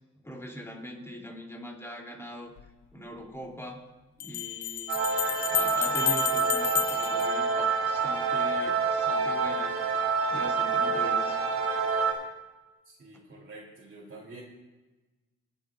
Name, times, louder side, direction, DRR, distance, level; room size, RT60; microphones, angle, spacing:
voice 1, 0.2-2.5 2.9-3.8 4.2-5.0 5.5-9.8 10.3-11.4, equal, 10° left, 0 dB, 3.0 m, -41 dB
Bell, 2.6-2.7 4.2-8.1, left 12 dB, 80° left, 0.6 m, -31 dB
sound 1, 4.9-12.1, right 5 dB, 90° right, 3.2 m, -27 dB
voice 2, 12.8-14.4, right 2 dB, 40° right, -5 dB, 2.8 m, -47 dB
27.5 x 9.3 x 2.5 m, 1.2 s
cardioid pair, 90°, 30 cm